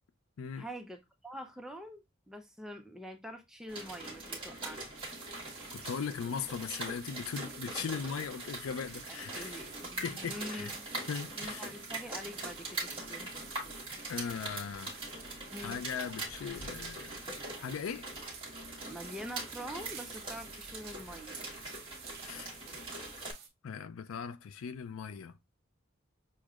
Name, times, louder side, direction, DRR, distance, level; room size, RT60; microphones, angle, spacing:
voice 1, 0.5-4.8 9.1-10.9 11.4-13.3 15.5-15.8 18.9-21.4, equal, ahead, 0.4 m, -45 dB
sound 1, 3.7-23.3, right 2 dB, 25° right, 1.2 m, -42 dB
sound 2, 5.0-23.5, right 7 dB, 50° right, 0.8 m, -52 dB
voice 2, 5.7-9.6 10.0-10.7 11.1-11.7 14.1-15.1 15.6-17.3 17.6-18.1 22.2-22.5 23.6-25.4, left 6 dB, 85° left, 0.4 m, -39 dB
6.3 x 2.1 x 2.3 m
head